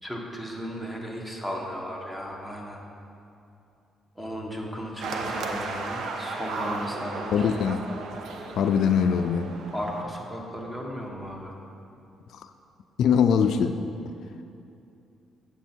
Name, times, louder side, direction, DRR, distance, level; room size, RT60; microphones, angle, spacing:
voice 1, 0.0-2.8 4.1-7.5 9.7-11.5, equal, 10° right, 0 dB, 1.4 m, -35 dB
sound 1, 5.0-10.0, right 3 dB, 70° right, 0.7 m, -35 dB
voice 2, 7.3-7.8 8.6-9.5 13.0-13.8, left 7 dB, 75° left, 8 dB, 0.3 m, -22 dB
8.1 x 7.0 x 4.4 m, 2.6 s
cardioid pair, 90°, 0 cm